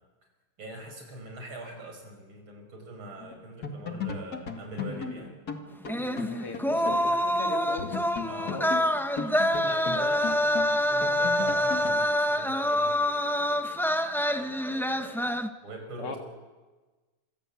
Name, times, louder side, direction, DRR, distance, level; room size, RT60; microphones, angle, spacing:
voice 1, 0.6-5.3 6.8-7.2 8.3-8.6 9.6-13.7 14.4-15.4 15.6-16.2, right 2 dB, 65° right, 3 dB, 6.3 m, -43 dB
sound 1, 3.2-3.4 3.6-7.1 7.3-7.4 7.8-12.1, left 5 dB, 45° left, 2.5 m, -37 dB
voice 2, 4.9-5.2 6.0-7.9 8.5-8.8 16.0-16.2, left 3 dB, 85° left, 4 dB, 3.5 m, -38 dB
sound 2, 5.9-15.5, equal, ahead, 0.5 m, -26 dB
26.5 x 23.0 x 8.4 m, 1.3 s
omnidirectional pair, 2.4 m